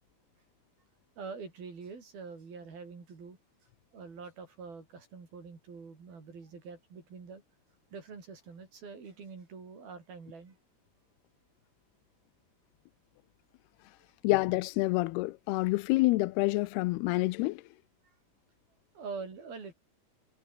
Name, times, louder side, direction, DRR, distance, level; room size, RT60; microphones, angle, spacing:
voice 1, 1.2-3.4 3.9-7.4 7.9-10.6 18.0-18.2 19.0-19.7, right 5 dB, 60° right, 7.3 m, -45 dB
voice 2, 14.2-17.6, left 21 dB, 80° left, 2.5 m, -27 dB
omnidirectional pair, 4.8 m